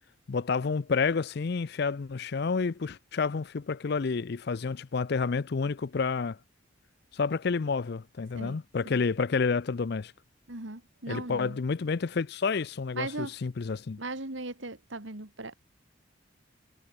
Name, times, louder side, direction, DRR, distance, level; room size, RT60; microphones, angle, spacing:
voice 1, 0.3-6.4 7.1-10.1 11.1-14.0, left 4 dB, 50° left, 0.5 m, -29 dB
voice 2, 10.5-11.6 12.9-13.3 14.0-15.5, right 2 dB, 65° right, 2.6 m, -38 dB
head